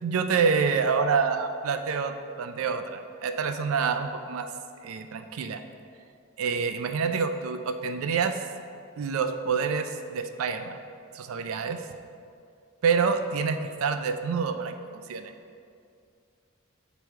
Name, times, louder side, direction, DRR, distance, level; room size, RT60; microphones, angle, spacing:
voice 1, 0.0-4.5 4.8-5.6 6.4-8.4 9.0-10.8 11.1-11.8 12.8-14.7 15.1-15.3, right 5 dB, 85° right, 8 dB, 0.4 m, -27 dB
8.1 x 3.0 x 4.6 m, 2.4 s
head